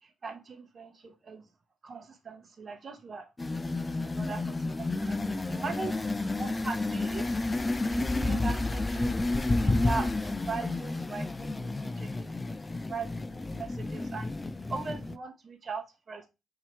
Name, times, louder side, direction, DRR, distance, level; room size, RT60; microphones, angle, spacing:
voice 1, 0.0-1.5 1.8-6.1 6.3-7.4 7.8-12.6 12.9-14.3 14.7-16.3, right 4 dB, 40° right, 0.9 m, -40 dB
sound 1, 3.4-15.2, left 2 dB, 20° left, 0.3 m, -31 dB
4.7 x 2.8 x 2.9 m
cardioid pair, 90°, 0 cm